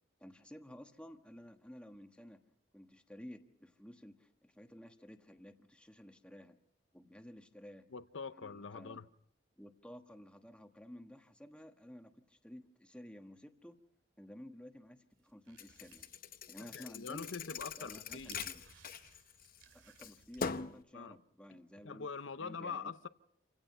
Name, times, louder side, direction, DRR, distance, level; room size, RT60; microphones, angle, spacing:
voice 1, 0.2-2.4 2.7-6.6 6.9-7.9 8.3-9.0 9.6-13.8 14.2-16.1 16.5-17.3 17.8-18.6 19.7-22.1 22.4-22.9, equal, 5° left, 1.3 m, -53 dB
voice 2, 7.9-9.1 16.7-18.5 20.9-21.2 21.5-23.1, left 5 dB, 80° left, 0.7 m, -44 dB
sound 1, 15.2-20.7, right 5 dB, 80° right, 2.4 m, -61 dB
Thump thud, 15.6-19.6 20.0-20.8, left 5 dB, 50° left, 0.7 m, -42 dB
28.0 x 17.0 x 5.6 m
head